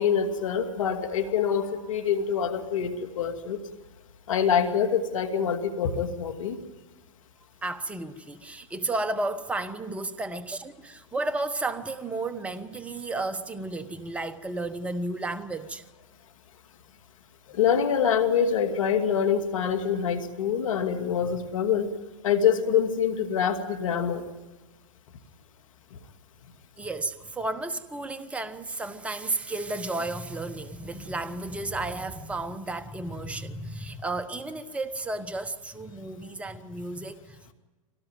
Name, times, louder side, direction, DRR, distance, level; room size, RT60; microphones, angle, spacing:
voice 1, 0.0-3.6 4.3-6.6 17.5-21.9 22.2-24.2, left 7 dB, 75° left, 2.5 m, -25 dB
voice 2, 7.6-15.8 26.8-37.5, right 2 dB, 5° right, 1.1 m, -33 dB
24.5 x 18.5 x 9.1 m
hypercardioid pair, 120°, 17 cm